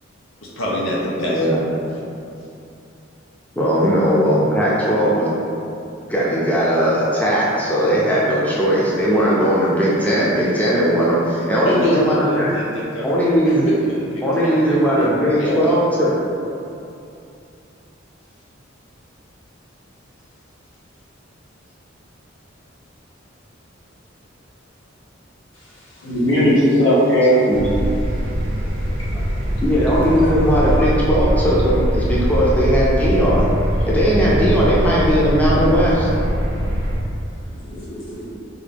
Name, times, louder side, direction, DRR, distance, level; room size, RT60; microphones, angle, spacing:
voice 1, 0.4-1.8 11.6-15.7, equal, 90° left, -5 dB, 0.6 m, -26 dB
voice 2, 1.3-1.6 3.6-5.3 6.1-12.5 13.0-13.7 14.2-16.1 27.5-27.6 29.1-29.3 29.6-33.5 33.9-36.1, equal, 10° left, -7 dB, 0.5 m, -18 dB
voice 3, 26.0-27.4 30.8-30.9 37.7-38.3, equal, 75° left, -8 dB, 1.1 m, -17 dB
sound 1, 27.5-37.0, equal, 45° right, 0.5 m, -21 dB
4.0 x 2.5 x 3.3 m, 2.7 s
head